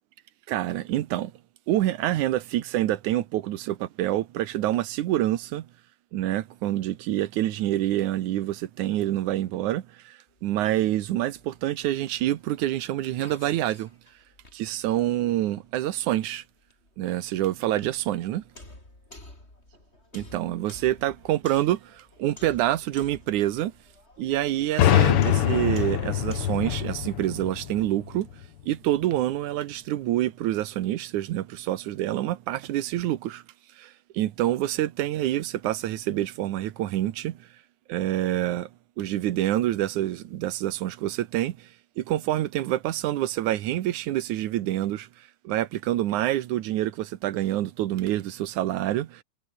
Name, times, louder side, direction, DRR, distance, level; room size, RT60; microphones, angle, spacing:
voice 1, 0.5-1.3 1.7-5.7 6.1-13.9 14.5-16.4 17.0-18.4 20.1-23.7 24.2-28.3 28.7-33.4 33.8-37.4 37.9-38.7 39.0-41.7 42.0-49.2, right 14 dB, 90° right, 2.5 m, -27 dB
sound 1, 10.3-26.9, left 2 dB, 20° left, 5.7 m, -51 dB
sound 2, 24.8-28.4, left 11 dB, 60° left, 1.8 m, -24 dB
omnidirectional pair, 3.4 m